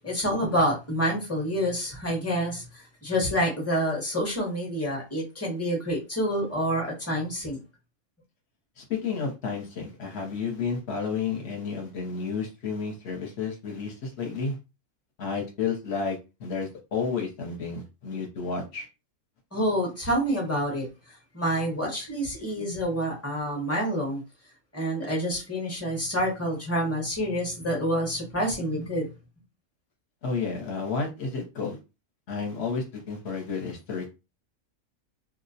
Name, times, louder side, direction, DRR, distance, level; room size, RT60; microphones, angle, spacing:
voice 1, 0.0-7.6 19.5-20.9 21.3-24.2 24.7-29.1, equal, 15° left, 0.7 m, -27 dB
voice 2, 8.8-14.6 15.2-18.9 30.2-31.8 32.3-34.1, left 5 dB, 55° left, 0.9 m, -31 dB
2.4 x 2.0 x 2.7 m
omnidirectional pair, 1.5 m